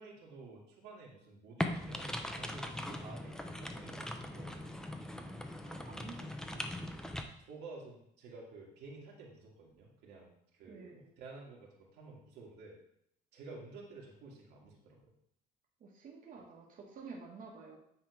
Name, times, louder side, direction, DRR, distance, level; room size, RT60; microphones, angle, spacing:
voice 1, 0.0-4.8 7.4-10.3 10.6-12.8 13.3-15.1, right 3 dB, 85° right, -2 dB, 2.0 m, -52 dB
sound 1, 1.6-7.2, left 1 dB, 5° left, 0.7 m, -40 dB
voice 2, 5.6-6.6 10.7-11.1 15.8-17.8, right 4 dB, 50° right, -2 dB, 1.6 m, -50 dB
8.8 x 3.6 x 4.9 m, 0.72 s
cardioid pair, 110°, 17 cm